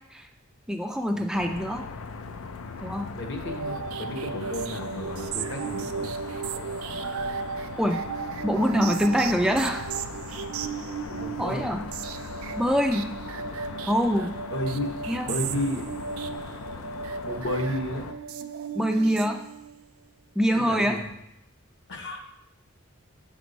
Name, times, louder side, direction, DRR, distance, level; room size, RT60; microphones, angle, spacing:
voice 1, 0.7-1.9 2.8-3.1 7.8-8.0 8.4-9.8 11.4-11.9 12.6-13.1 13.9-14.3 15.1-15.3 18.7-19.4 20.4-21.0, equal, 5° right, 4 dB, 0.3 m, -24 dB
sound 1, 1.3-18.1, left 4 dB, 90° left, 0.5 m, -40 dB
voice 2, 3.2-6.1 11.1-11.7 13.4-13.6 14.5-14.9 15.2-15.9 17.2-18.0 20.6-21.0 21.9-22.2, left 1 dB, 60° left, 3 dB, 1.0 m, -32 dB
sound 2, 3.4-19.8, right 6 dB, 90° right, 0.4 m, -35 dB
6.1 x 5.0 x 4.0 m, 0.82 s
head